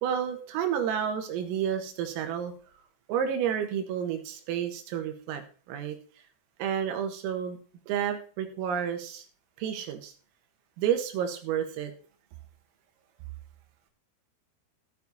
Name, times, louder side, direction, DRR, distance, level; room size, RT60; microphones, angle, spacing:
voice 1, 0.0-2.5 3.1-5.4 5.7-6.0 6.6-7.6 7.9-9.3 9.6-10.1 10.8-11.9, right 8 dB, 85° right, 7 dB, 4.2 m, -30 dB
13.5 x 7.3 x 4.1 m, 0.40 s
omnidirectional pair, 5.9 m